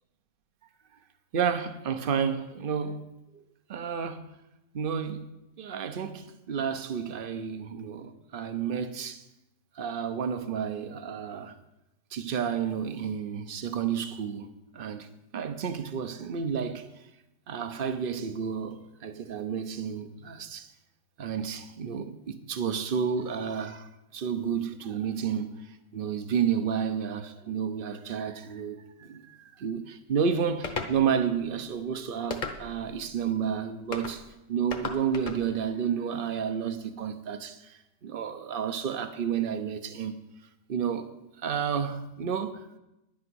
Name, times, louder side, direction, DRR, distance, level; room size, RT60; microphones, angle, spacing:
voice 1, 1.3-3.0 3.3-3.4 3.7-4.2 4.7-5.3 5.6-9.2 9.8-11.5 12.1-14.5 14.7-15.1 15.3-16.9 17.5-20.7 21.2-25.6 25.9-34.2 34.5-37.7 38.0-40.1 40.7-41.1 41.4-42.6, right 7 dB, 45° right, 0.7 m, -31 dB
sound 1, 30.6-30.9 32.3-32.9 33.9-34.2 34.7-35.4, left 4 dB, 35° left, 1.1 m, -34 dB
11.0 x 8.7 x 6.2 m
omnidirectional pair, 1.7 m